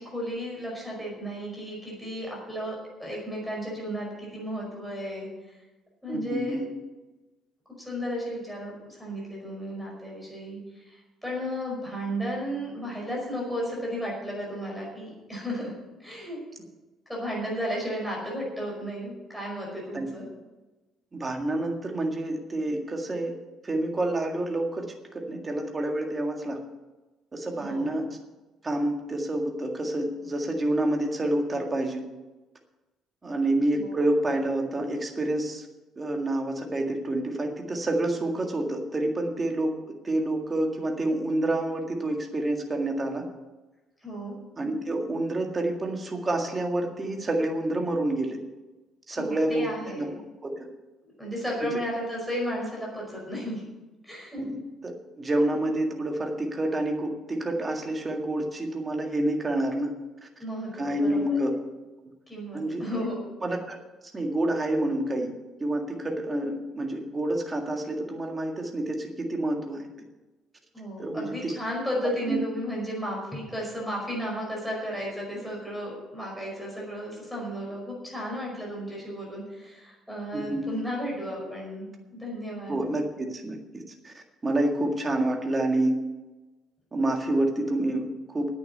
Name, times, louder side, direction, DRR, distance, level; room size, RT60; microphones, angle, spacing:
voice 1, 0.0-5.6 6.0-6.6 7.8-15.7 16.0-16.4 17.1-20.3 27.6-27.9 33.7-34.0 44.0-44.4 49.1-50.2 51.2-53.6 54.0-54.4 55.9-56.0 60.4-61.4 62.3-63.2 70.7-82.8, equal, ahead, -3 dB, 5.3 m, -34 dB
voice 2, 6.1-6.7 19.9-20.1 21.1-23.3 23.6-26.6 27.3-28.1 28.6-32.0 33.2-35.7 36.0-43.2 44.6-48.4 49.1-49.6 50.0-50.1 50.4-50.7 51.6-51.7 54.4-54.6 54.8-59.9 60.2-60.3 60.8-61.5 62.5-63.0 63.4-63.8 64.1-65.3 65.6-69.9 71.0-71.5 72.3-72.4 80.3-80.7 82.7-85.9 86.9-88.5, right 1 dB, 20° right, 2 dB, 1.8 m, -28 dB
10.0 x 8.6 x 9.1 m, 1.1 s
cardioid pair, 165°, 0 cm